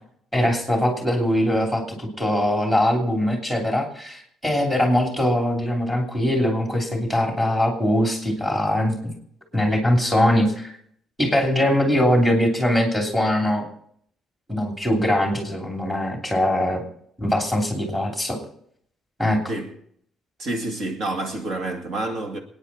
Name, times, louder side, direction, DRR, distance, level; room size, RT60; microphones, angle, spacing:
voice 1, 0.3-9.1 9.5-10.7 11.2-13.6 14.5-16.8 17.2-18.4 19.2-19.4, left 1 dB, 5° right, 3.1 m, -22 dB
voice 2, 20.4-22.4, right 2 dB, 50° right, 2.1 m, -28 dB
26.5 x 9.7 x 4.2 m
cardioid pair, 170°, 0 cm